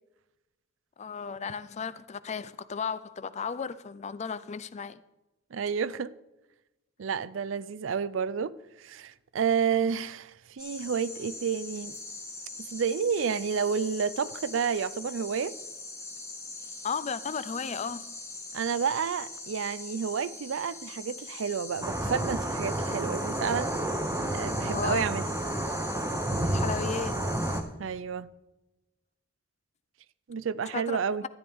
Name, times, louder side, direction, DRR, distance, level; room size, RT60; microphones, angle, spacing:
voice 1, 1.0-5.0 16.8-18.1 24.7-25.0 26.4-27.3 30.7-31.0, left 6 dB, 35° left, 0.4 m, -34 dB
voice 2, 5.5-6.1 7.0-8.5 8.8-12.0 12.7-15.5 18.5-23.7 24.3-25.3 27.8-28.3 30.3-31.3, right 6 dB, 85° right, 0.5 m, -30 dB
sound 1, 10.6-27.6, left 3 dB, 15° left, 1.5 m, -42 dB
sound 2, 21.8-27.6, right 1 dB, 15° right, 0.8 m, -30 dB
13.0 x 9.4 x 3.5 m
head